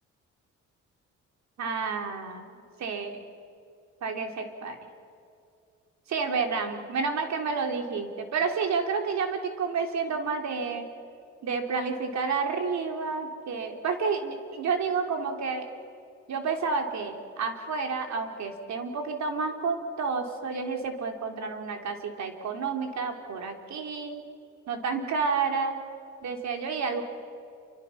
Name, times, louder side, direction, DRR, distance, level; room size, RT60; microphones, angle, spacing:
voice 1, 1.6-2.5 2.8-3.2 4.0-4.8 6.1-10.9 11.4-15.7 16.3-24.2 24.7-25.8 26.2-27.0, right 5 dB, 65° right, 4 dB, 3.3 m, -30 dB
29.0 x 25.5 x 5.9 m, 2.4 s
cardioid pair, 90°, 30 cm